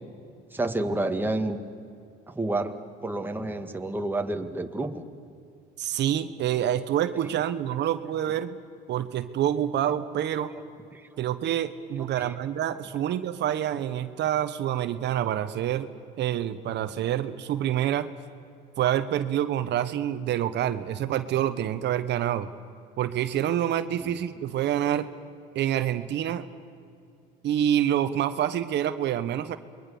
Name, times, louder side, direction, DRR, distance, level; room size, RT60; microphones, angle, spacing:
voice 1, 0.5-1.6 2.3-2.8 3.0-5.0 10.9-11.0 12.2-12.3 24.0-24.1, right 2 dB, 10° right, 5 dB, 1.8 m, -29 dB
voice 2, 5.8-8.6 8.9-10.5 11.2-15.9 16.2-18.1 18.8-22.5 23.0-25.1 25.5-26.4 27.4-29.6, right 11 dB, 60° right, 11 dB, 1.1 m, -27 dB
28.0 x 22.0 x 7.0 m, 2.5 s
cardioid pair, 95°, 20 cm